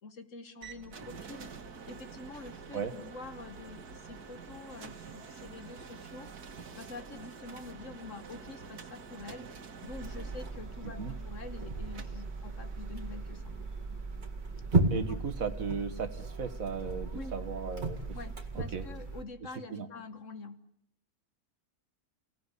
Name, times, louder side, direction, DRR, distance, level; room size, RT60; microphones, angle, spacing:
voice 1, 0.0-1.5 1.9-6.3 6.8-9.5 9.8-13.5 14.9-15.2 17.1-17.4 18.1-20.7, left 3 dB, 55° left, 10 dB, 1.6 m, -46 dB
sound 1, 0.6-18.5, right 5 dB, 85° right, 2.0 m, -49 dB
sound 2, 9.9-19.2, right 3 dB, 30° right, 2.1 m, -35 dB
voice 2, 14.9-18.0 18.6-18.8 19.7-19.9, right 6 dB, 60° right, 10 dB, 1.8 m, -36 dB
29.0 x 17.5 x 8.2 m, 0.76 s
omnidirectional pair, 1.6 m